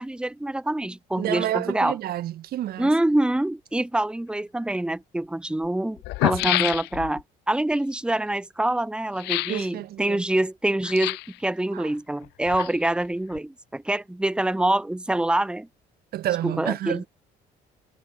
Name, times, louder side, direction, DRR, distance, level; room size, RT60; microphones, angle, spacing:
voice 1, 0.0-2.0 2.8-15.7 16.4-17.1, right 1 dB, 5° right, 1.5 m, -25 dB
voice 2, 1.2-2.9 6.5-6.6 9.5-10.2 11.7-11.9 16.1-17.0, right 13 dB, 65° right, 1.9 m, -29 dB
sound 1, 4.7-4.8 5.6-5.7 6.0-7.2 9.2-9.7 10.8-11.4 12.2-13.0 13.3-13.4, left 21 dB, 85° left, 0.8 m, -27 dB
cardioid pair, 110°, 17 cm